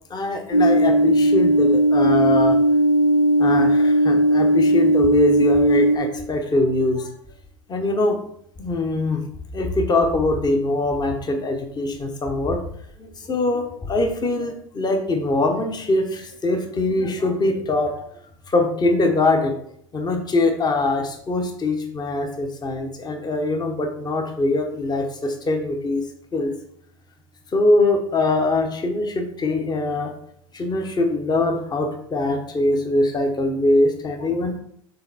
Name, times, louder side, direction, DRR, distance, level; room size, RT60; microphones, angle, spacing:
voice 1, 0.1-2.6 3.4-7.1 7.7-8.2 8.6-9.3 9.5-12.6 13.0-18.0 18.5-19.5 19.9-26.0 26.3-26.5 27.5-30.1 30.5-34.6, left 2 dB, 25° left, 4 dB, 1.1 m, -22 dB
sound 1, 0.5-6.0, right 1 dB, 75° left, 1.1 m, -17 dB
6.9 x 4.1 x 4.1 m, 0.68 s
figure-of-eight pair, 75°, 17 cm